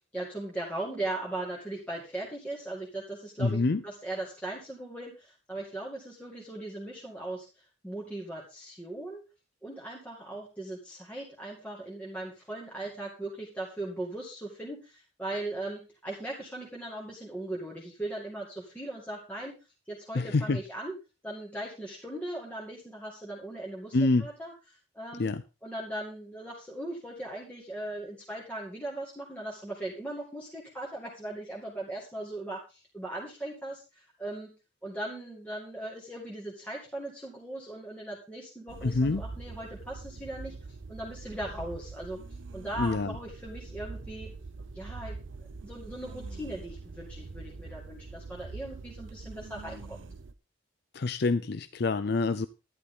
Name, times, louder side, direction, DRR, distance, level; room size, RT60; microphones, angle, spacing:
voice 1, 0.1-9.2 9.6-19.6 19.9-20.9 21.2-25.3 25.6-34.5 34.8-42.2 42.5-44.3 44.7-45.2 45.6-50.0, right 1 dB, 5° left, -3 dB, 2.2 m, -39 dB
voice 2, 3.4-3.8 20.1-20.6 23.9-24.3 25.2-25.4 38.8-39.2 42.8-43.2 50.9-52.5, left 3 dB, 50° left, 12 dB, 0.5 m, -26 dB
sound 1, 38.7-50.3, right 3 dB, 65° right, 0.6 m, -43 dB
11.5 x 11.0 x 3.8 m, 0.29 s
head